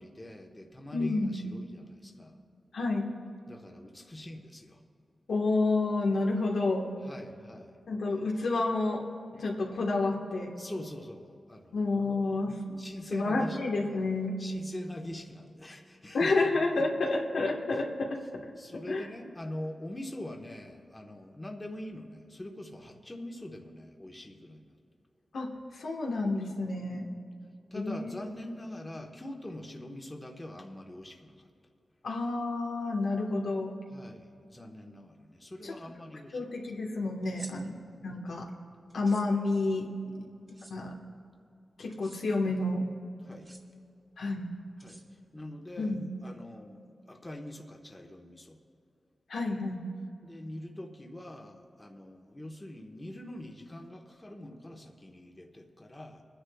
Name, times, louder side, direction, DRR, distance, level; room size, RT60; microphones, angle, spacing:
voice 1, 0.0-2.3 3.5-4.8 7.0-7.8 10.6-12.2 12.8-13.6 14.4-16.3 16.7-17.0 18.6-24.8 26.8-27.1 27.7-31.5 33.9-36.5 37.5-37.7 38.1-38.2 40.1-40.4 43.3-43.5 44.8-48.6 50.2-56.2, left 1 dB, 20° left, 2 dB, 1.2 m, -44 dB
voice 2, 0.9-1.4 2.7-3.1 5.3-6.9 7.9-9.0 9.3-10.5 11.7-12.8 13.1-14.4 16.1-18.2 18.7-19.0 25.3-27.0 27.7-28.2 28.4-28.6 32.0-33.8 35.6-35.8 36.3-37.8 38.0-38.5 38.9-39.9 40.7-40.9 41.8-42.9 44.2-44.5 45.8-46.1 49.3-49.9, left 2 dB, 85° left, -1 dB, 1.3 m, -30 dB
sound 1, 37.2-37.5 38.9-39.2 40.5-40.7 41.9-42.2 43.3-43.6 44.8-45.4, right 1 dB, 30° right, 1.8 m, -49 dB
27.0 x 10.0 x 2.3 m, 2.6 s
cardioid pair, 65°, 0 cm